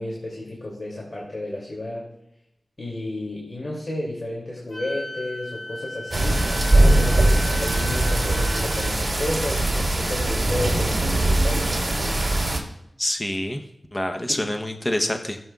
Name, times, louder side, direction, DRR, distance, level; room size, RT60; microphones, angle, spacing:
voice 1, 0.0-2.1 2.8-12.2 14.2-14.4, left 1 dB, 50° left, -3 dB, 2.7 m, -32 dB
Wind instrument woodwind instrument, 4.7-8.9, left 1 dB, 70° left, 2.4 m, -36 dB
sound 1, 6.1-12.6, right 1 dB, 40° right, 3.5 m, -21 dB
voice 2, 13.0-13.6 13.9-15.4, left 1 dB, 25° left, 5 dB, 0.9 m, -26 dB
16.5 x 7.9 x 2.4 m, 0.82 s
cardioid pair, 50°, 0 cm